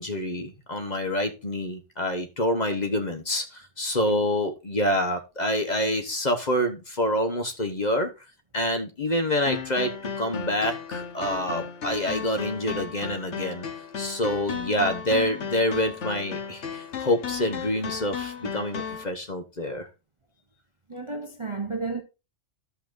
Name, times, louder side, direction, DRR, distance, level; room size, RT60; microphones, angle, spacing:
voice 1, 0.0-8.1 8.5-13.7 14.0-19.9, left 1 dB, 35° left, 1.2 m, -27 dB
sound 1, 9.5-19.0, left 6 dB, 60° left, 1.3 m, -35 dB
voice 2, 20.9-22.0, right 3 dB, 30° right, 0.8 m, -32 dB
14.0 x 5.7 x 2.6 m
omnidirectional pair, 1.4 m